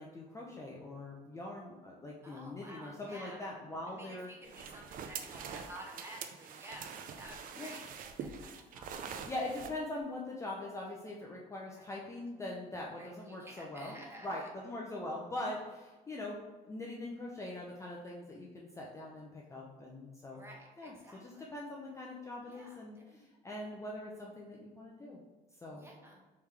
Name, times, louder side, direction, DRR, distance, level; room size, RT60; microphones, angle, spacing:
voice 1, 0.0-4.3 7.5-7.8 9.3-13.9 14.2-16.4 16.7-20.4 20.8-25.2 25.6-25.9, left 1 dB, 15° left, -3 dB, 0.5 m, -42 dB
voice 2, 2.2-3.5 3.9-9.3 11.8-11.9 13.0-14.5 20.3-21.5 22.5-23.2 25.7-26.2, right 1 dB, 15° right, -1 dB, 0.9 m, -52 dB
sound 1, 4.4-9.7, right 6 dB, 55° right, 0.4 m, -45 dB
3.5 x 3.1 x 3.3 m, 1.2 s
cardioid pair, 110°, 17 cm